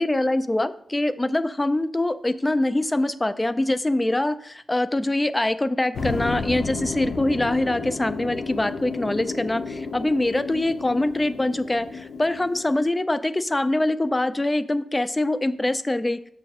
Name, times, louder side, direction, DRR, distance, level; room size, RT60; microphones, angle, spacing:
voice 1, 0.0-16.2, left 1 dB, 15° left, 12 dB, 0.4 m, -24 dB
sound 1, 5.9-12.9, left 4 dB, 55° left, 0.6 m, -32 dB
6.2 x 4.6 x 6.4 m, 0.65 s
wide cardioid pair, 140°, 0 cm